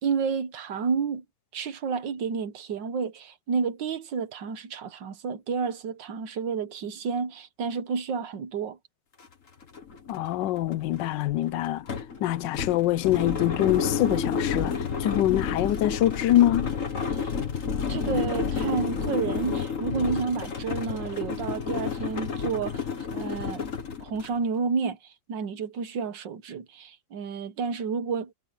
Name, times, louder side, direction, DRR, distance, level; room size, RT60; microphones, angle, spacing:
voice 1, 0.0-1.2 1.5-8.8 17.1-17.3 17.9-22.8 23.1-23.6 24.0-28.3, right 5 dB, 80° right, 1.9 m, -30 dB
sound 1, 9.2-9.3 9.6-24.4, left 6 dB, 45° left, 2.1 m, -30 dB
voice 2, 10.1-11.8 12.2-16.7, left 13 dB, 85° left, 1.3 m, -24 dB
omnidirectional pair, 1.9 m